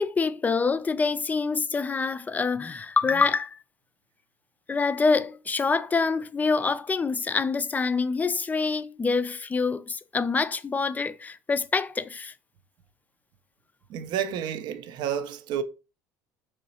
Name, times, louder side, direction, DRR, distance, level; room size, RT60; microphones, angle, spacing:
voice 1, 0.0-3.6 4.7-12.3, left 4 dB, 20° left, 0.3 m, -26 dB
voice 2, 13.9-15.6, right 9 dB, 60° right, 0.4 m, -30 dB
3.8 x 3.0 x 2.8 m
hypercardioid pair, 80°, 9 cm